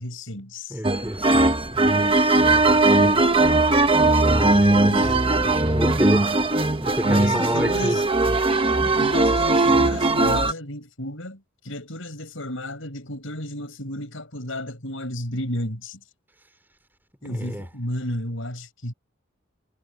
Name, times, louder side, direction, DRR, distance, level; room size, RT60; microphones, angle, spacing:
voice 1, 0.0-0.8 2.8-3.1 4.6-5.2 7.0-8.1 8.8-16.0 17.2-18.9, left 1 dB, 70° left, 7.0 m, -33 dB
voice 2, 0.7-3.2 4.0-8.0 17.2-17.7, equal, 10° right, 3.6 m, -30 dB
sound 1, 0.8-10.5, right 2 dB, 25° right, 1.3 m, -19 dB
head